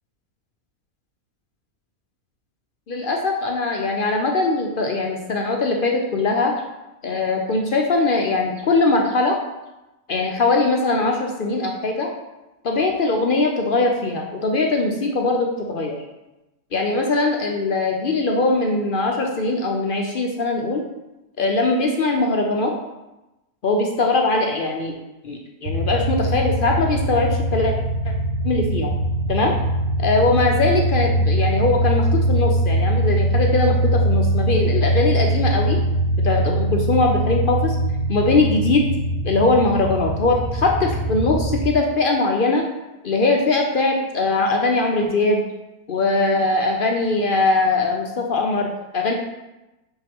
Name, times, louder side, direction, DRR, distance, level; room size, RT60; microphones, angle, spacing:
voice 1, 2.9-6.5 7.0-9.4 10.1-12.1 12.6-16.0 16.7-20.8 21.4-22.7 23.6-25.0 25.2-27.7 28.0-28.1 28.4-28.9 29.3-29.5 30.0-35.8 36.2-37.8 38.1-38.9 39.2-42.6 43.0-45.4 45.9-49.1, left 3 dB, 60° left, 2 dB, 0.5 m, -21 dB
sound 1, 25.6-41.7, right 1 dB, 60° right, 1.5 m, -22 dB
5.7 x 5.4 x 3.5 m, 1.0 s
omnidirectional pair, 1.5 m